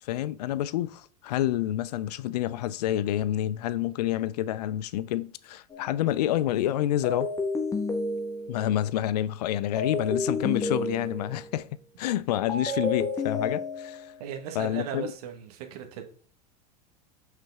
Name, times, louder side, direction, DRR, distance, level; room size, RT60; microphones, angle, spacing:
voice 1, 0.0-7.3 8.5-11.7 12.0-14.1 14.6-15.1, left 13 dB, 80° left, 0.4 m, -28 dB
sound 1, 5.7-6.0 7.0-8.8 9.8-11.5 12.5-14.2, left 3 dB, 15° left, 1.4 m, -31 dB
voice 2, 14.2-16.0, right 8 dB, 70° right, 1.5 m, -37 dB
5.8 x 5.7 x 3.6 m
hypercardioid pair, 105°, 20 cm